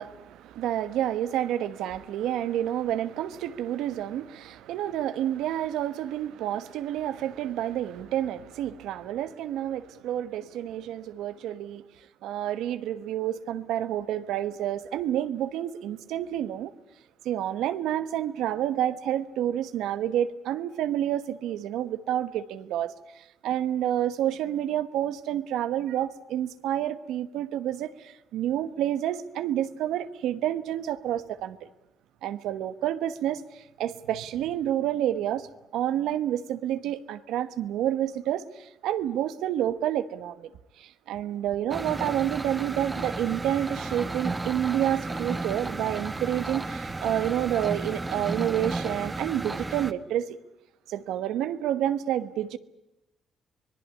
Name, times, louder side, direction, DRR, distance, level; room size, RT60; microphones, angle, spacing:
voice 1, 0.0-11.8 12.2-16.7 17.2-31.6 32.2-35.5 35.7-40.5 40.8-50.4 50.9-52.6, right 11 dB, 90° right, 1.2 m, -29 dB
sound 1, 41.7-49.9, right 3 dB, 20° right, 1.4 m, -33 dB
25.5 x 19.5 x 9.7 m
cardioid pair, 90°, 0 cm